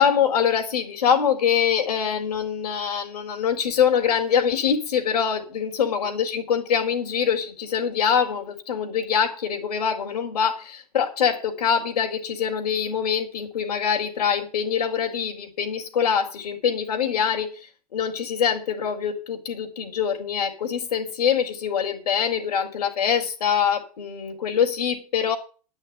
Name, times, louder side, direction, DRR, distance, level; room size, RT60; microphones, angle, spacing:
voice 1, 0.0-25.4, left 7 dB, 85° left, 4.1 m, -24 dB
11.0 x 6.5 x 9.3 m
hypercardioid pair, 120°, 20 cm